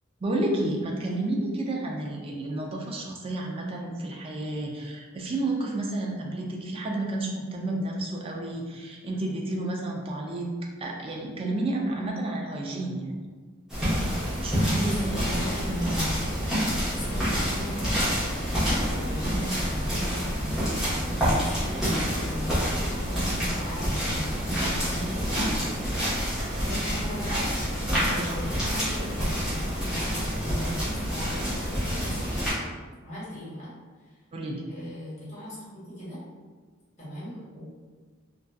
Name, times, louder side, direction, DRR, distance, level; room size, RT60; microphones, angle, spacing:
voice 1, 0.2-10.5 10.8-13.3 14.4-15.6 34.3-34.6, right 2 dB, 25° right, -1 dB, 0.3 m, -31 dB
sound 1, 13.7-32.5, equal, 5° right, 0.9 m, -27 dB
voice 2, 14.7-16.2 16.9-24.5 24.7-25.9 26.6-32.4 33.0-33.7 34.0-34.2 34.7-36.2 37.0-37.6, equal, 35° left, -10 dB, 1.2 m, -38 dB
2.6 x 2.4 x 2.2 m, 1.5 s
head